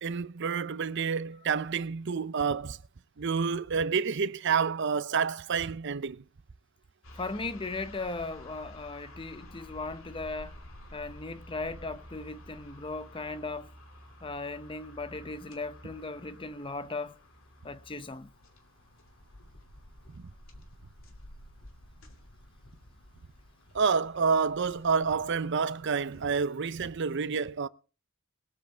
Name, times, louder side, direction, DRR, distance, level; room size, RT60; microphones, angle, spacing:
voice 1, 0.0-2.8 3.2-6.2 23.7-27.7, right 5 dB, 55° right, 0.6 m, -28 dB
sound 1, 7.0-26.4, left 1 dB, 65° left, 2.7 m, -51 dB
voice 2, 7.2-10.6 10.9-13.7 14.2-17.2 17.6-18.3, left 3 dB, 25° left, 0.8 m, -37 dB
22.0 x 7.6 x 4.5 m
head